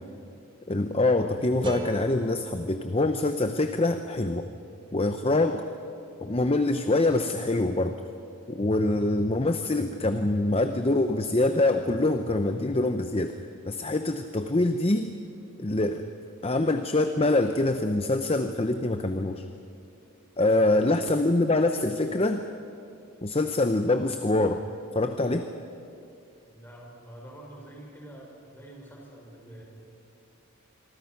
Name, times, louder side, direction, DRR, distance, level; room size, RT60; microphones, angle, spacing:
voice 1, 0.7-4.4 4.9-5.7 6.2-8.0 8.5-13.4 13.7-15.1 15.6-16.0 16.4-19.4 20.4-22.4 23.2-24.6 24.9-25.5, left 2 dB, 25° left, 8 dB, 0.7 m, -25 dB
sound 1, 1.6-4.7, equal, 20° right, 1.6 m, -41 dB
voice 2, 20.5-20.8 26.5-29.6, right 1 dB, 10° left, -2 dB, 5.2 m, -47 dB
26.0 x 23.5 x 5.9 m, 2.6 s
head